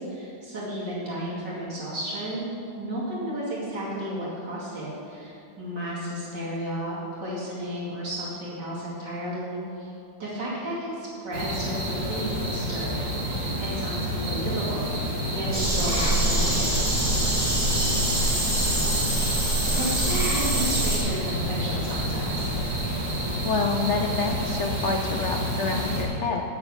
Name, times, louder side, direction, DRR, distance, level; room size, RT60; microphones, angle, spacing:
voice 1, 0.0-2.5 2.7-7.0 7.2-9.9 10.2-14.9 15.3-17.1 19.7-22.5, equal, 80° right, -8 dB, 3.1 m, -33 dB
sound 1, 11.3-26.0, equal, 45° right, 2.6 m, -29 dB
sound 2, 15.5-21.0, right 1 dB, 20° right, 2.8 m, -25 dB
voice 2, 23.4-26.4, left 3 dB, 65° left, 3 dB, 0.7 m, -27 dB
8.1 x 6.9 x 8.4 m, 2.6 s
omnidirectional pair, 1.9 m